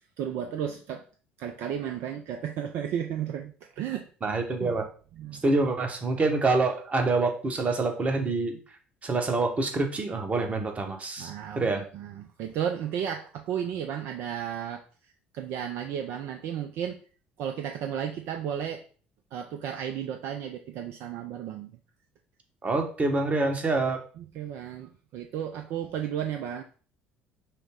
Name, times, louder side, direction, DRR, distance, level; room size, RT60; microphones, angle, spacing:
voice 1, 0.2-1.0 1.4-4.1 4.6-4.8 5.1-5.4 11.2-17.0 17.4-18.8 19.3-21.7 24.2-26.6, right 9 dB, 55° right, 5 dB, 0.3 m, -34 dB
voice 2, 4.2-4.8 5.4-8.6 9.0-11.8 22.6-24.0, right 3 dB, 30° right, 4 dB, 1.0 m, -26 dB
5.4 x 2.0 x 3.4 m, 0.41 s
figure-of-eight pair, 55°, 5 cm